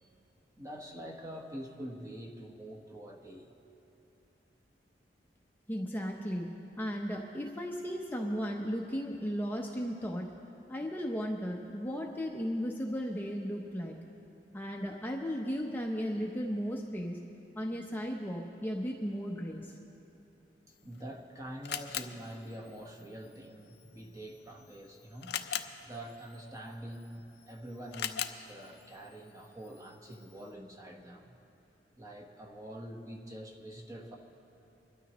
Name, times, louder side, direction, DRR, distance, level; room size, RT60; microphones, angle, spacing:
voice 1, 0.6-3.5 20.8-25.4 25.8-31.4 32.0-34.2, right 1 dB, 20° right, 0 dB, 1.3 m, -45 dB
voice 2, 5.7-6.5 6.8-10.3 10.7-14.0 14.5-17.2 17.5-19.7, equal, 10° left, -1 dB, 0.7 m, -35 dB
Camera, 20.7-30.5, left 9 dB, 65° left, 0.5 m, -44 dB
24.5 x 12.5 x 3.0 m, 3.0 s
head